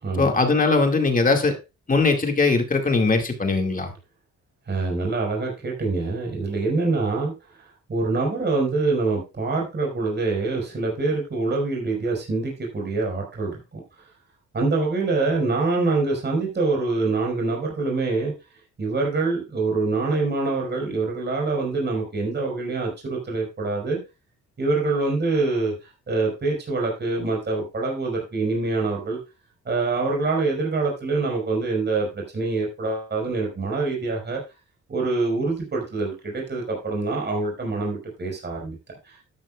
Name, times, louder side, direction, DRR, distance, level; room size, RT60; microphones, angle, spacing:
voice 1, 0.2-1.5 1.9-3.9, left 3 dB, 25° left, 4 dB, 2.1 m, -20 dB
voice 2, 4.7-13.8 14.5-18.3 18.8-24.0 24.6-25.7 26.1-29.2 29.6-34.4 34.9-38.8 39.0-39.2, right 3 dB, 35° right, 0 dB, 4.8 m, -25 dB
12.0 x 10.5 x 2.3 m, 0.27 s
cardioid pair, 90°, 30 cm